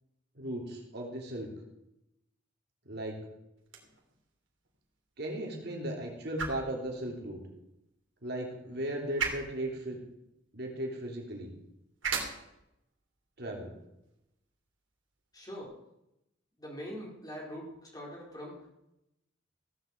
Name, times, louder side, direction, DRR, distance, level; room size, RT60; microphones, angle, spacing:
voice 1, 0.3-1.5 2.8-3.2 5.2-7.4 8.2-10.0 10.5-11.5 13.4-13.7, right 1 dB, 55° right, 1 dB, 3.2 m, -36 dB
sound 1, 3.6-15.6, right 5 dB, 75° right, 3.1 m, -43 dB
voice 2, 15.3-15.7 16.6-18.6, equal, 20° left, -2 dB, 4.3 m, -43 dB
16.0 x 8.0 x 7.9 m, 0.86 s
head